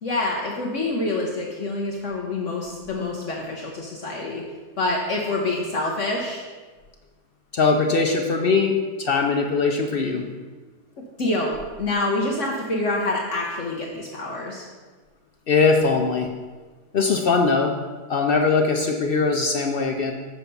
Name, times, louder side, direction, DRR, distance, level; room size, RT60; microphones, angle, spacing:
voice 1, 0.0-4.4 4.8-6.4 11.2-14.6, left 2 dB, 55° left, -2 dB, 1.2 m, -26 dB
voice 2, 7.5-10.3 15.5-16.3 16.9-17.7 18.1-20.1, left 4 dB, 75° left, 2 dB, 0.5 m, -21 dB
7.5 x 5.8 x 5.3 m, 1.4 s
omnidirectional pair, 1.7 m